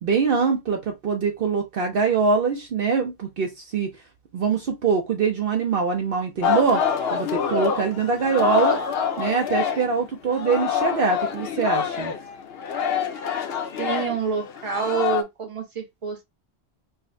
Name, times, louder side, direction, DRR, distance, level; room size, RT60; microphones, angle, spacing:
voice 1, 0.0-3.9 4.3-6.8 7.1-8.8 9.2-12.1, right 5 dB, 60° right, 0.8 m, -23 dB
Singing, 6.4-10.0 10.3-15.2, left 7 dB, 70° left, 0.8 m, -26 dB
voice 2, 13.8-16.2, right 6 dB, 30° right, 0.9 m, -27 dB
4.9 x 2.1 x 2.6 m
omnidirectional pair, 1.1 m